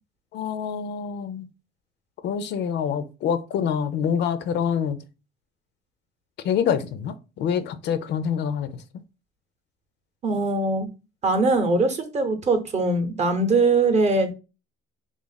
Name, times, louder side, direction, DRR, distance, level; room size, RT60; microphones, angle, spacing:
voice 1, 0.3-1.5 2.2-5.0 6.4-8.8, left 7 dB, 55° left, 0.5 m, -26 dB
voice 2, 10.2-10.9 11.2-14.3, right 3 dB, 30° right, 0.8 m, -21 dB
3.6 x 2.4 x 3.9 m
cardioid pair, 135°, 21 cm